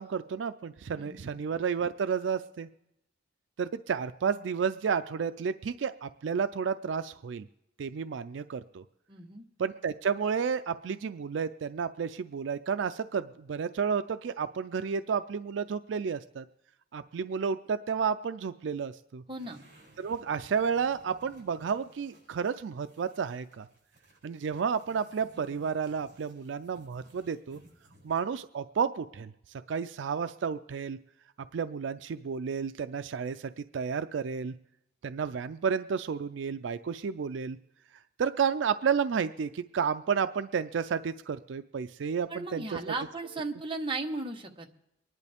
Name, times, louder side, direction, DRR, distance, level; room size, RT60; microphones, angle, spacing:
voice 1, 0.0-2.7 3.6-7.5 7.8-8.8 9.6-16.5 16.9-19.2 20.0-23.7 24.2-27.6 28.0-31.0 31.5-34.5 35.0-37.6 38.2-42.8, right 6 dB, 75° right, 11 dB, 0.4 m, -31 dB
voice 2, 9.1-9.4 19.3-19.7 42.3-44.7, right 3 dB, 30° right, 2 dB, 1.2 m, -36 dB
sound 1, 19.3-28.4, right 1 dB, 45° right, 7.5 m, -60 dB
24.5 x 11.0 x 3.5 m, 0.84 s
head